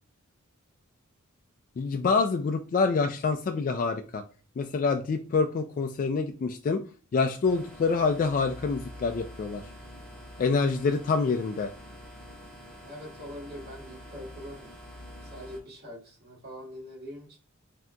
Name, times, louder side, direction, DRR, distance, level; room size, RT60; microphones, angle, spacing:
voice 1, 1.8-4.2 4.6-6.8 7.1-9.6 10.4-11.7, left 4 dB, 40° left, 0.3 m, -26 dB
sound 1, 7.4-15.6, left 1 dB, 5° left, 1.3 m, -46 dB
voice 2, 12.8-14.7 15.2-17.4, equal, 45° right, 1.7 m, -43 dB
5.9 x 2.7 x 2.2 m
head